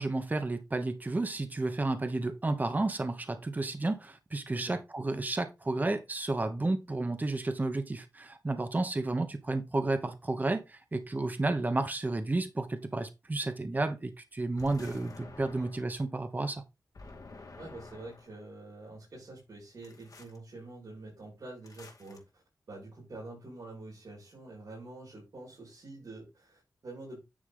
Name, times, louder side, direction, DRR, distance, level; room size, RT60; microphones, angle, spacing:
voice 1, 0.0-16.6, right 2 dB, 25° right, 1.1 m, -32 dB
sound 1, 14.6-16.0 16.9-18.4 19.8-20.4 21.6-22.2, left 3 dB, 65° left, 2.2 m, -50 dB
voice 2, 17.6-22.4 22.7-27.2, right 2 dB, 65° right, 5.4 m, -46 dB
9.7 x 4.8 x 3.8 m
wide cardioid pair, 105°, 7 cm